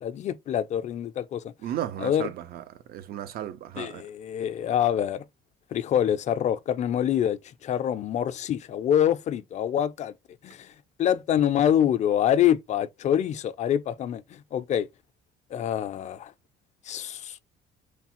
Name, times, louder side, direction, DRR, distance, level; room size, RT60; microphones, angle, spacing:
voice 1, 0.0-1.5 2.0-2.3 3.8-5.2 5.7-10.1 10.4-10.7 11.0-14.9 15.5-16.3 16.9-17.4, left 10 dB, 45° left, 0.4 m, -26 dB
voice 2, 1.6-2.6 2.9-4.0, right 11 dB, 65° right, 0.4 m, -34 dB
3.1 x 2.0 x 2.9 m
cardioid pair, 110°, 17 cm